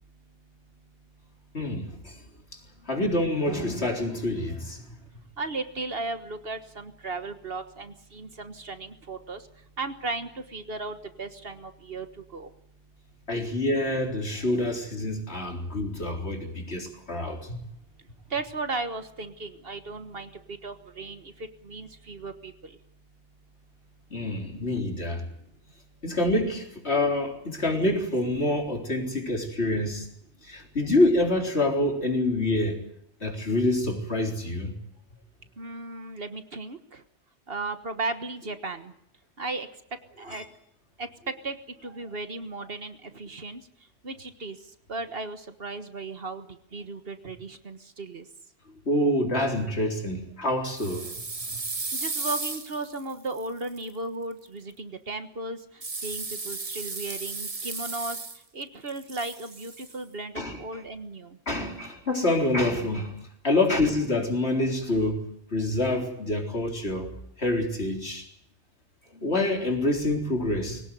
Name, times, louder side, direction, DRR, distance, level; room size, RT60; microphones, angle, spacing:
voice 1, 1.5-2.2 2.9-4.8 13.3-17.6 24.1-25.2 26.0-30.1 30.5-32.8 33.2-34.7 40.3-40.4 48.9-51.1 60.4-60.6 61.5-63.2 63.4-65.2 65.5-67.1 67.4-68.3 69.2-70.8, left 1 dB, 65° left, 4.1 m, -26 dB
voice 2, 5.4-9.4 9.8-12.1 12.3-12.5 18.3-21.3 21.6-22.7 35.6-37.0 37.5-38.9 39.4-39.7 40.2-40.4 41.0-41.1 41.4-41.6 41.8-43.6 44.0-44.6 44.9-46.5 46.7-48.2 51.9-55.6 56.0-58.2 58.5-61.4, right 3 dB, 55° right, 1.6 m, -35 dB
sound 1, 50.8-53.8 55.8-58.6 58.9-60.0, right 3 dB, 30° right, 1.2 m, -35 dB
22.0 x 18.0 x 9.3 m
omnidirectional pair, 1.2 m